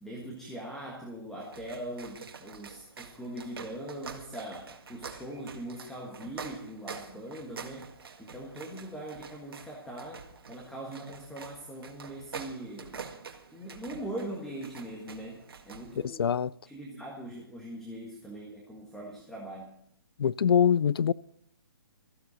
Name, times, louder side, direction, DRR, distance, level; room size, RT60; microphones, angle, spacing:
voice 1, 0.0-13.0 13.5-16.3 16.6-19.7, right 1 dB, 5° left, 1.5 m, -41 dB
sound 1, 1.4-16.1, right 5 dB, 70° right, 1.8 m, -46 dB
voice 2, 16.2-16.5 20.2-21.1, left 8 dB, 75° left, 0.5 m, -23 dB
16.5 x 14.5 x 4.1 m
hypercardioid pair, 165°, 13 cm